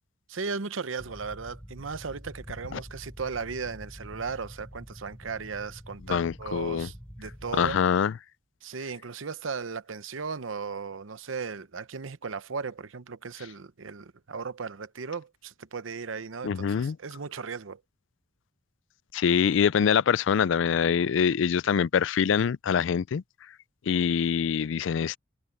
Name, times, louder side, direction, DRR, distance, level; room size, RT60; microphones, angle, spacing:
voice 1, 0.3-7.8 8.6-17.8, right 5 dB, 85° right, 0.8 m, -36 dB
sound 1, 1.0-7.8, equal, 5° left, 4.0 m, -46 dB
voice 2, 6.1-6.9 7.6-8.1 16.4-17.0 19.1-23.2 23.9-25.2, left 7 dB, 70° left, 0.4 m, -24 dB
head